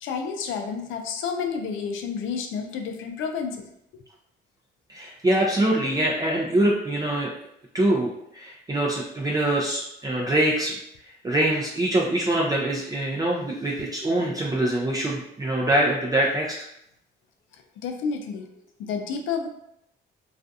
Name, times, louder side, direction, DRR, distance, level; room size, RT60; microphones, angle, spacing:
voice 1, 0.0-3.7 3.9-4.0 17.5-18.5 18.8-19.5, left 6 dB, 85° left, 5 dB, 0.4 m, -30 dB
voice 2, 4.9-7.3 7.7-10.7 11.2-16.6, right 1 dB, 20° right, -3 dB, 0.4 m, -24 dB
2.4 x 2.3 x 2.6 m, 0.78 s
cardioid pair, 90°, 20 cm